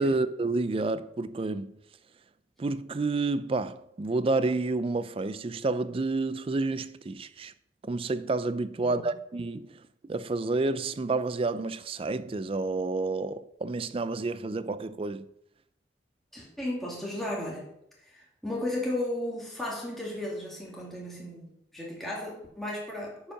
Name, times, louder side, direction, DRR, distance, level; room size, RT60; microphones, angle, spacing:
voice 1, 0.0-1.7 2.6-7.5 7.8-9.8 10.0-15.2, right 3 dB, 30° right, 0.4 m, -29 dB
voice 2, 8.8-9.1 16.3-17.7 18.0-23.3, left 1 dB, ahead, 2.2 m, -35 dB
8.3 x 5.4 x 5.7 m
head